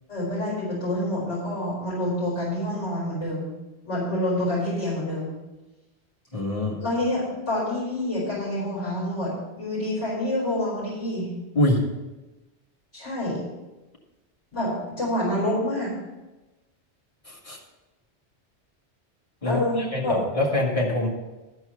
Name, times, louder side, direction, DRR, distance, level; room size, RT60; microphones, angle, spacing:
voice 1, 0.1-3.5 3.8-5.3 6.8-11.3 12.9-13.4 14.5-15.9 19.4-20.2, left 1 dB, 85° left, -6 dB, 5.2 m, -27 dB
voice 2, 6.3-6.8 11.6-11.9 17.3-17.6 19.4-19.6 19.9-21.1, left 1 dB, 30° left, -2 dB, 2.1 m, -24 dB
13.5 x 4.7 x 7.8 m, 1.1 s
omnidirectional pair, 1.2 m